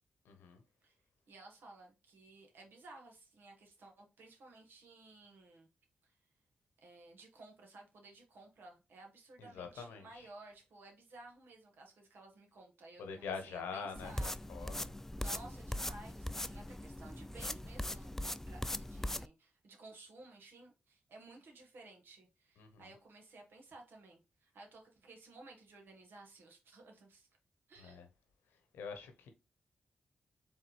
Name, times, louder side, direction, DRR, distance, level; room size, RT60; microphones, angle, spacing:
voice 1, 0.3-0.6 9.4-10.3 13.0-14.9 22.6-22.8 27.8-28.1 28.7-29.3, left 5 dB, 90° left, 0.8 m, -45 dB
voice 2, 1.3-5.7 6.0-6.2 6.8-14.3 15.2-27.3 27.7-28.0, right 2 dB, 75° right, 1.4 m, -56 dB
sound 1, 14.0-19.3, left 1 dB, 10° left, 0.3 m, -40 dB
4.5 x 3.4 x 3.2 m
supercardioid pair, 45°, 4 cm